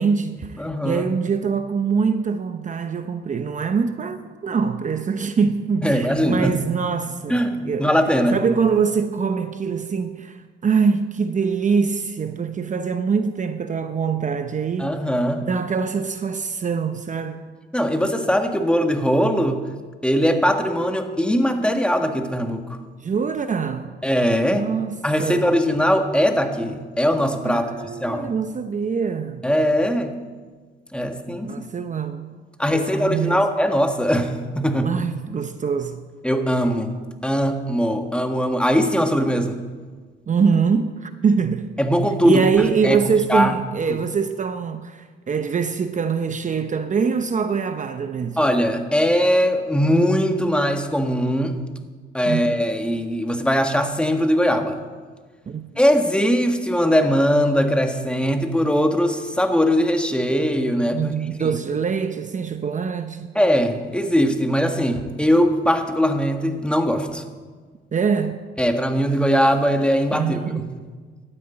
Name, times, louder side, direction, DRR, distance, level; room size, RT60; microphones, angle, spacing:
voice 1, 0.0-7.9 8.3-15.0 15.5-17.4 23.0-23.9 24.5-25.6 27.4-29.4 31.4-32.4 32.7-33.5 34.8-36.0 40.3-41.7 42.2-48.4 52.3-52.6 55.5-55.7 60.9-63.3 67.9-68.4 70.1-70.7, right 6 dB, 40° right, 0.8 m, -24 dB
voice 2, 0.6-1.0 5.8-6.7 7.3-8.4 14.8-15.4 17.7-19.6 20.0-22.8 24.0-24.7 25.0-27.7 28.0-28.3 29.4-30.2 30.9-31.6 32.6-34.9 36.2-36.9 37.2-39.6 41.8-42.5 42.8-43.0 43.3-43.5 43.9-44.0 48.4-51.6 52.1-54.8 55.8-61.1 63.3-67.2 68.6-70.6, equal, 5° left, 1.6 m, -20 dB
12.5 x 9.7 x 8.9 m
cardioid pair, 90°, 20 cm